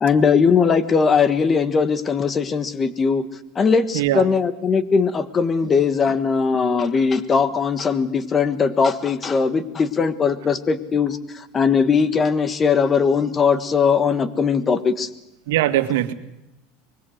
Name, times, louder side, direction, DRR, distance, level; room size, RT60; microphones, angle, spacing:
voice 1, 0.0-3.2 3.5-15.1, left 5 dB, 20° left, 13 dB, 1.4 m, -19 dB
voice 2, 15.5-16.1, right 13 dB, 85° right, 9 dB, 1.9 m, -20 dB
24.5 x 22.0 x 6.5 m, 0.90 s
supercardioid pair, 150°, 0 cm